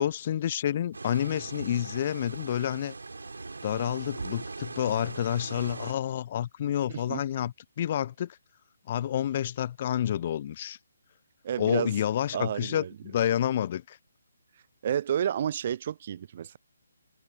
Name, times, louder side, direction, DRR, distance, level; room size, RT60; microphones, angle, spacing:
voice 1, 0.0-2.9 3.6-8.4 8.9-10.8 11.6-14.0, left 10 dB, 35° left, 0.5 m, -29 dB
sound 1, 0.9-5.9, right 3 dB, 70° right, 4.6 m, -40 dB
voice 2, 6.9-7.2 11.4-11.9 12.3-12.9 14.8-16.6, right 9 dB, 40° right, 0.5 m, -30 dB
figure-of-eight pair, 145°, 0 cm